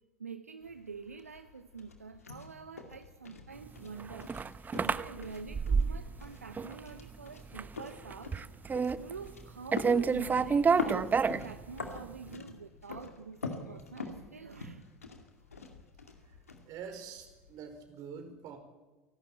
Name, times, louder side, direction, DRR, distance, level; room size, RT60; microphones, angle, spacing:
voice 1, 0.2-4.3 4.7-8.3 9.0-14.8, right 5 dB, 90° right, 10 dB, 0.8 m, -46 dB
sound 1, 0.6-17.6, left 4 dB, 85° left, 2.3 m, -45 dB
sound 2, 3.8-6.3 6.6-7.1 7.4-7.7 8.0-9.4 9.7-12.0, right 5 dB, 20° right, 0.8 m, -29 dB
voice 2, 16.2-18.6, right 6 dB, 50° right, 6 dB, 4.7 m, -46 dB
28.0 x 12.0 x 8.9 m, 1.2 s
figure-of-eight pair, 75°, 8 cm